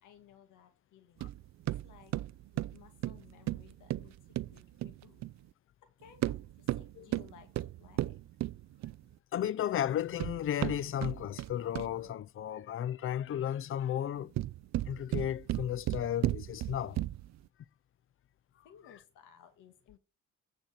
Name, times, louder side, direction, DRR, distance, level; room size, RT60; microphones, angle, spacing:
voice 1, 0.0-1.3 1.8-2.1 2.7-5.3 6.0-8.2 18.6-20.0, left 9 dB, 85° left, 2.1 m, -59 dB
sound 1, 1.2-5.4 6.1-9.1 9.9-12.1 14.1-17.4, right 15 dB, 65° right, 0.5 m, -36 dB
voice 2, 9.3-14.3 14.9-17.0, left 10 dB, 45° left, 0.5 m, -34 dB
9.0 x 4.4 x 7.4 m
cardioid pair, 90°, 30 cm